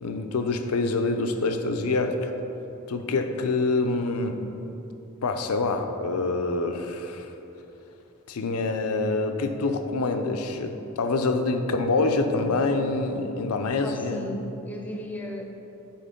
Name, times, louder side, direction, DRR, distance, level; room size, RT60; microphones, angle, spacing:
voice 1, 0.0-2.3 2.9-4.4 5.2-7.3 8.3-14.3, left 3 dB, 90° left, 7 dB, 0.5 m, -26 dB
voice 2, 13.7-15.4, equal, 5° left, 1 dB, 0.6 m, -35 dB
7.8 x 4.4 x 5.1 m, 3.0 s
head